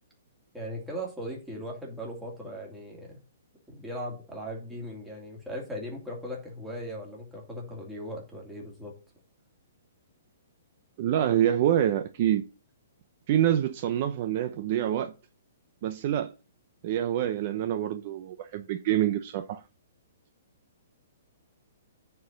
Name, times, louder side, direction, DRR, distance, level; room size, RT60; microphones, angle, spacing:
voice 1, 0.5-3.2 3.7-8.9, equal, 5° right, 2.8 m, -38 dB
voice 2, 11.0-12.4 13.3-15.1 15.8-16.3 16.8-19.6, right 11 dB, 40° right, 0.6 m, -26 dB
9.4 x 4.5 x 5.2 m
hypercardioid pair, 160°, 0 cm